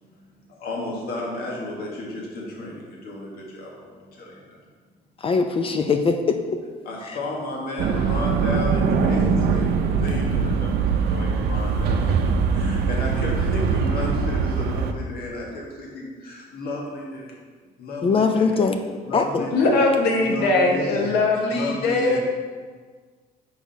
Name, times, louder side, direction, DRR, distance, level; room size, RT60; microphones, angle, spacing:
voice 1, 0.0-4.6 6.8-17.3 17.8-18.6 19.1-19.7 20.2-21.2 21.5-22.2, left 2 dB, 65° left, -2 dB, 1.6 m, -33 dB
voice 2, 5.2-6.4 18.0-18.8 19.1-19.4, left 4 dB, 35° left, 6 dB, 0.4 m, -21 dB
sound 1, 7.8-14.9, right 5 dB, 75° right, 0.6 m, -22 dB
voice 3, 19.5-22.2, left 2 dB, 90° left, 1 dB, 1.0 m, -20 dB
5.6 x 4.8 x 4.1 m, 1.5 s
cardioid pair, 110°, 17 cm